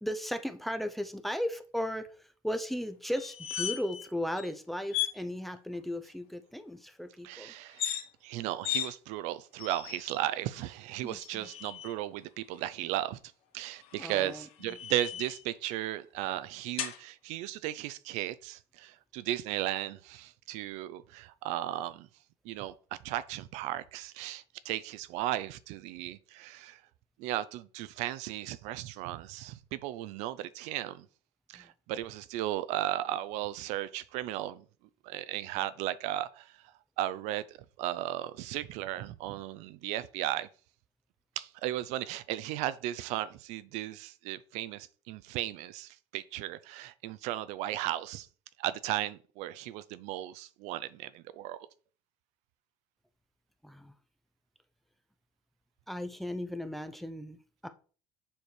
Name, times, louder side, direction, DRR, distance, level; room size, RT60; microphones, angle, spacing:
voice 1, 0.0-7.5 11.0-11.5 14.0-14.5 31.5-31.7 53.6-53.9 55.9-57.7, equal, ahead, 0.6 m, -36 dB
sound 1, 3.2-4.1 4.4-4.5 4.9-5.2 7.6-8.0 8.6-8.9 9.6-10.2 11.1-11.9 13.8-15.4 16.8-17.0, left 11 dB, 55° left, 1.3 m, -36 dB
voice 2, 7.2-7.9 8.2-13.2 13.5-22.1 22.4-22.7 23.0-26.8 27.2-31.1 31.5-34.6 35.0-36.5 37.0-40.5 41.4-48.3 48.6-51.6, right 14 dB, 80° right, 0.6 m, -35 dB
7.1 x 4.9 x 4.5 m
cardioid pair, 155°, 12 cm